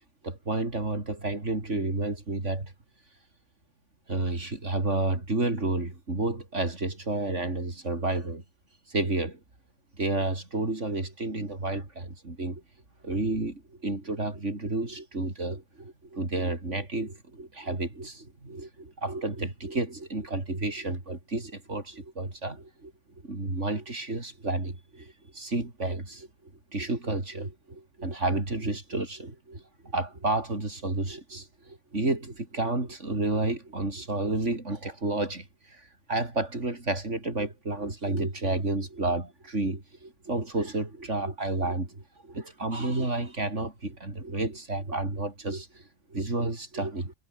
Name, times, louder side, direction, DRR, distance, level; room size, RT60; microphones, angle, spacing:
voice 1, 0.2-2.7 4.1-8.4 8.9-9.4 10.0-12.6 13.0-22.9 23.2-45.8 46.1-47.1, right 2 dB, 70° right, 4.9 m, -31 dB
omnidirectional pair, 1.3 m